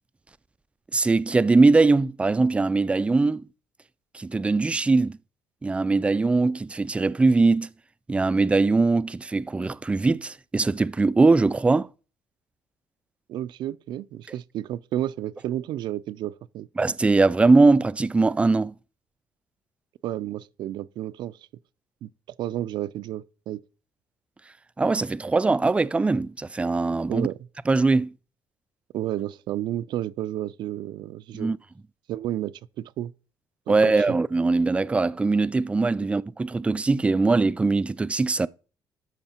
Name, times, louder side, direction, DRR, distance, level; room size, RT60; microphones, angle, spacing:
voice 1, 0.9-3.4 4.1-5.2 5.6-7.7 8.1-11.9 16.8-18.7 24.8-27.3 27.7-28.1 31.3-31.6 33.7-38.5, right 3 dB, 15° right, 0.4 m, -21 dB
voice 2, 13.3-16.7 20.0-21.4 22.0-22.1 22.4-23.6 27.1-27.4 28.9-31.5 32.1-33.1 33.7-34.2, right 12 dB, 70° right, 0.5 m, -31 dB
12.5 x 5.8 x 4.4 m
cardioid pair, 105°, 8 cm